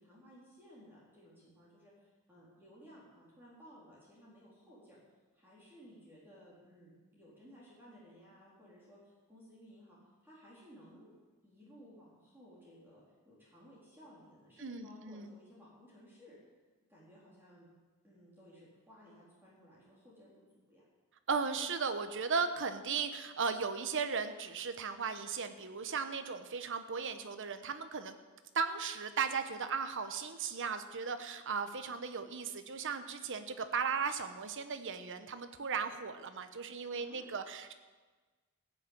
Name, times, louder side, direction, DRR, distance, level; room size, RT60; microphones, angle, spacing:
voice 1, 0.0-5.0 5.3-11.1 11.4-16.4 16.9-17.7 18.0-20.9 37.0-37.3, equal, 10° right, -7 dB, 3.8 m, -58 dB
voice 2, 14.6-15.3 21.3-28.1 28.5-37.7, right 5 dB, 60° right, 9 dB, 1.0 m, -36 dB
16.0 x 6.6 x 8.8 m, 1.3 s
head